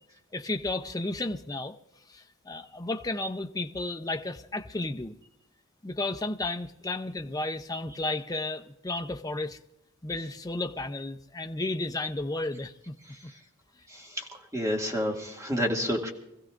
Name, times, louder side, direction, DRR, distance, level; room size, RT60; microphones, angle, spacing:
voice 1, 0.3-1.8 2.1-5.1 5.8-9.6 10.0-12.9, left 2 dB, 15° left, 0.6 m, -33 dB
voice 2, 13.9-14.3 14.5-16.1, equal, 15° right, 2.2 m, -29 dB
25.5 x 15.5 x 2.5 m
head